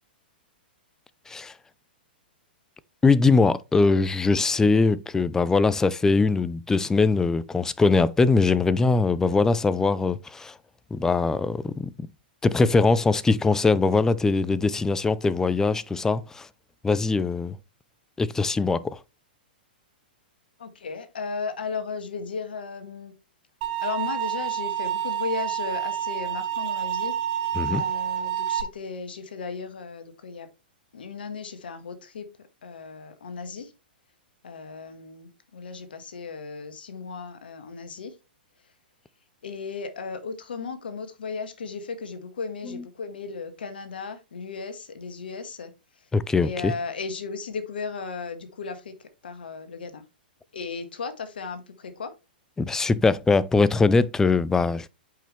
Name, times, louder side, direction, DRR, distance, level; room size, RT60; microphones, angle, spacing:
voice 1, 3.0-10.5 10.9-11.9 12.4-16.5 16.8-17.6 18.2-19.0 27.6-27.8 42.7-42.8 46.1-46.7 52.6-54.9, left 4 dB, 10° left, 0.5 m, -22 dB
voice 2, 20.6-23.1 23.8-27.1 27.7-30.5 30.9-32.3 32.6-33.7 34.4-38.1 39.4-45.7 46.4-48.9 49.2-50.0 50.5-52.1, left 5 dB, 75° left, 1.6 m, -35 dB
sound 1, 23.6-28.6, right 11 dB, 50° right, 1.6 m, -28 dB
8.7 x 5.4 x 3.2 m
hypercardioid pair, 110°, 5 cm